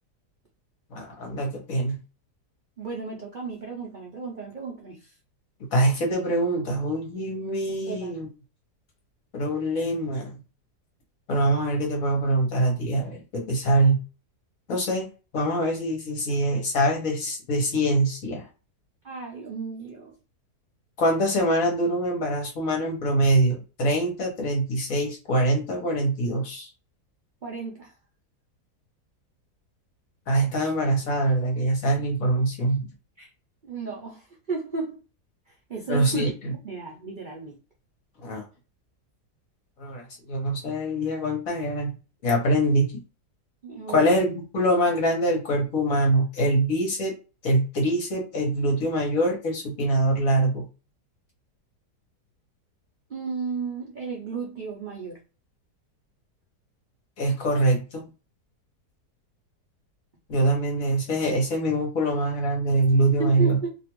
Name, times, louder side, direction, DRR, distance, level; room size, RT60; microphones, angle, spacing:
voice 1, 0.9-2.0 5.7-8.3 9.3-10.3 11.3-14.0 14.7-15.1 15.3-18.4 21.0-26.7 30.3-32.9 35.9-36.5 38.2-38.4 39.8-40.0 40.3-41.9 42.2-42.9 43.9-47.1 47.4-50.7 57.2-58.1 60.3-63.6, right 1 dB, 60° left, 1.3 m, -24 dB
voice 2, 2.8-5.1 7.9-8.1 19.0-20.2 27.4-27.9 33.2-33.3 33.6-35.0 35.5-37.5 43.6-44.3 53.1-55.2 63.2-63.8, right 4 dB, 60° right, 0.5 m, -34 dB
2.9 x 2.5 x 3.0 m
omnidirectional pair, 1.8 m